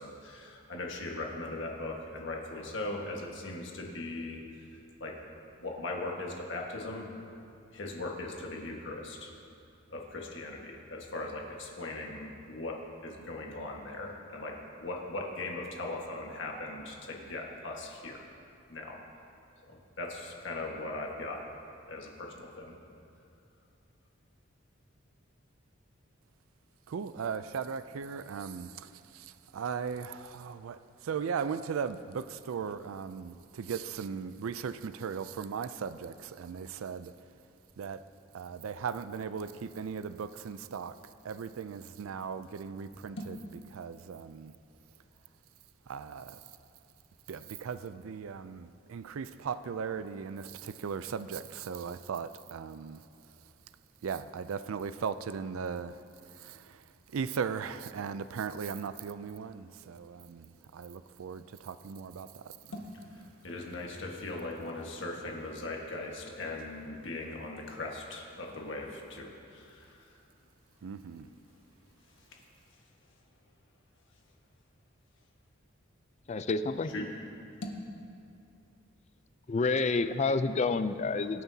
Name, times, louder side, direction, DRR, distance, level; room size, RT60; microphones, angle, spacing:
voice 1, 0.0-4.4 4.7-5.1 5.6-7.1 7.7-9.3 9.9-12.8 13.0-18.3 18.7-19.0 19.7-21.4 21.9-22.8 42.9-43.0 62.6-70.2 72.2-72.4 76.9-77.0, left 2 dB, 65° left, -1 dB, 1.5 m, -39 dB
voice 2, 26.9-28.9 29.1-29.2 29.5-30.8 31.0-37.1 37.8-38.0 38.3-40.9 41.2-43.4 43.7-44.5 45.9-46.4 47.3-53.0 54.0-56.0 56.4-56.6 57.1-60.5 60.7-62.5 70.8-71.3, right 6 dB, 90° right, 13 dB, 0.4 m, -37 dB
voice 3, 76.3-76.9 79.5-81.4, left 3 dB, 35° left, 11 dB, 0.4 m, -29 dB
24.0 x 9.5 x 2.8 m, 2.6 s
head